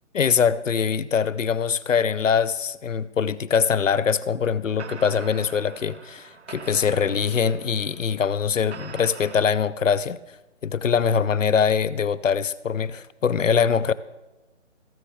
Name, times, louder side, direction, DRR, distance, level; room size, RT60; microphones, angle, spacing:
voice 1, 0.1-10.2 10.6-13.9, left 7 dB, 75° left, 0.7 m, -23 dB
sound 1, 4.8-9.5, right 5 dB, 60° right, 0.9 m, -43 dB
18.0 x 7.4 x 3.4 m
figure-of-eight pair, 160°, 38 cm